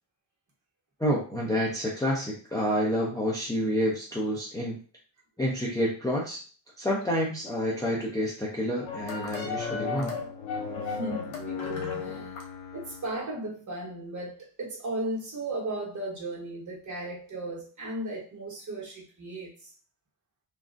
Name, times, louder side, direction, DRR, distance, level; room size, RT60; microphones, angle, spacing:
voice 1, 1.0-4.8 5.4-6.4 6.8-10.2, equal, 10° left, -4 dB, 0.5 m, -28 dB
sound 1, 8.8-13.2, left 5 dB, 85° left, 1.0 m, -34 dB
voice 2, 10.7-12.3 12.7-19.7, right 1 dB, 40° right, -3 dB, 1.1 m, -36 dB
3.2 x 2.4 x 2.5 m, 0.37 s
wide cardioid pair, 155°, 46 cm